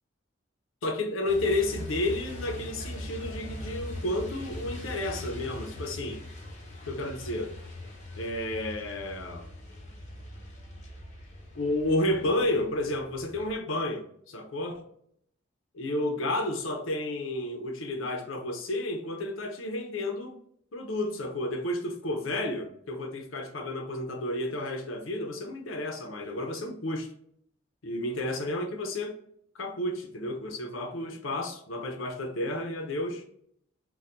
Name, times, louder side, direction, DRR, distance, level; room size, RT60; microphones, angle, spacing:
voice 1, 0.8-6.2 6.9-7.5 8.2-9.5 11.5-14.9 15.7-20.4 20.7-27.1 27.8-29.2 29.5-33.2, left 1 dB, 85° left, 0.6 m, -31 dB
Truck, 1.2-13.5, left 1 dB, 35° left, 0.8 m, -41 dB
4.2 x 2.2 x 2.5 m
head